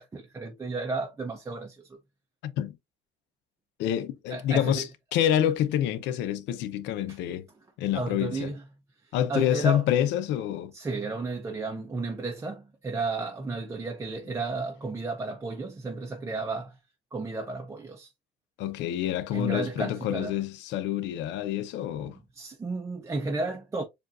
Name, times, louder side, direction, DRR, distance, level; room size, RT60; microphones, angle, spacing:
voice 1, 0.0-2.0 4.3-4.9 7.1-7.2 7.9-8.6 9.0-9.8 10.7-16.8 17.1-18.1 19.3-20.4 22.0-23.8, right 3 dB, 15° right, 0.6 m, -33 dB
voice 2, 2.4-2.8 3.8-4.9 5.1-7.5 7.8-8.5 9.1-10.7 18.6-22.2, left 11 dB, 75° left, 0.7 m, -27 dB
7.0 x 2.5 x 2.5 m
cardioid pair, 140°, 19 cm